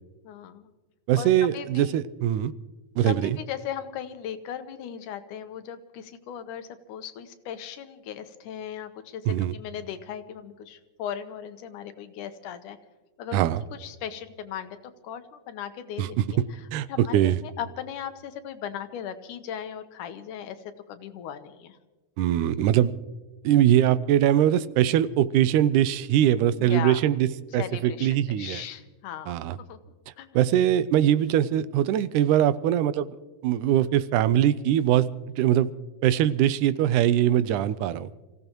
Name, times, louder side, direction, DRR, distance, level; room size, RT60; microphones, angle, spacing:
voice 1, 0.2-0.7 1.2-1.9 3.0-12.8 13.2-14.8 15.0-21.8 26.6-27.0 27.5-29.8 30.2-30.4, left 9 dB, 85° left, 9 dB, 2.5 m, -38 dB
voice 2, 1.1-2.5 3.0-3.4 9.3-9.5 13.3-13.6 16.0-16.2 16.7-17.4 22.2-22.9 23.4-27.3 27.5-28.6 29.3-29.6 30.4-33.1 33.4-35.1 35.4-35.7 36.0-38.1, right 11 dB, 90° right, 15 dB, 2.2 m, -22 dB
29.0 x 16.5 x 3.0 m, 1.2 s
omnidirectional pair, 3.5 m